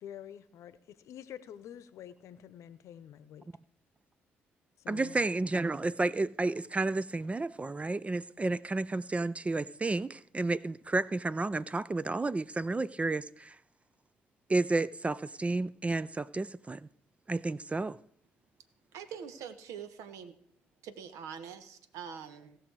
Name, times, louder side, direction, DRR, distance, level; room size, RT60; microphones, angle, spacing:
voice 1, 0.0-3.5 4.8-5.3, left 10 dB, 65° left, 0.8 m, -48 dB
voice 2, 4.9-13.5 14.5-16.8 17.3-18.0, right 2 dB, 25° right, 0.4 m, -31 dB
voice 3, 18.9-20.3 20.8-22.6, right 7 dB, 75° right, 1.2 m, -44 dB
17.0 x 6.2 x 4.7 m
hypercardioid pair, 50°, 5 cm